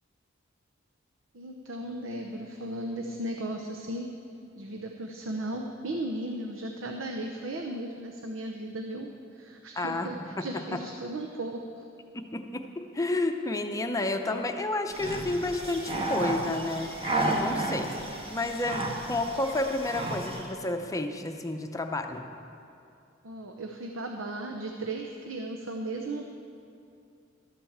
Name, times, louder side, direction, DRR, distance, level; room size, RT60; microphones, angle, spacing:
voice 1, 1.3-4.1 4.5-11.8 23.2-26.3, right 1 dB, 75° right, 3 dB, 0.8 m, -36 dB
voice 2, 9.8-10.1 10.4-10.5 12.1-16.9 17.3-18.0 18.3-22.2, left 2 dB, 15° left, 5 dB, 0.7 m, -31 dB
sound 1, 14.9-20.5, right 2 dB, 30° right, 1.6 m, -32 dB
12.5 x 8.8 x 7.2 m, 2.6 s
head